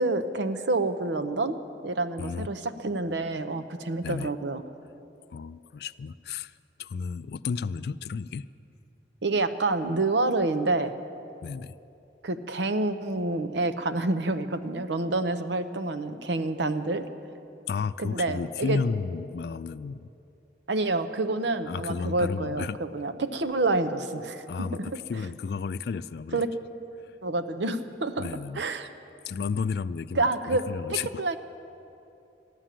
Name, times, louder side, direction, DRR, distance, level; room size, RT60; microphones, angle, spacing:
voice 1, 0.0-1.6 1.8-4.6 9.2-11.0 12.2-17.1 18.0-18.8 20.7-24.9 26.3-26.5 27.2-28.3 28.6-28.9 30.2-30.6 30.9-31.4, right 2 dB, 80° right, 10 dB, 0.7 m, -28 dB
voice 2, 5.3-6.5 6.8-8.5 11.4-11.7 17.7-20.1 21.6-22.8 24.5-26.4 28.2-28.6 29.2-31.2, left 5 dB, 60° left, 16 dB, 0.3 m, -32 dB
14.5 x 11.5 x 7.5 m, 2.7 s
head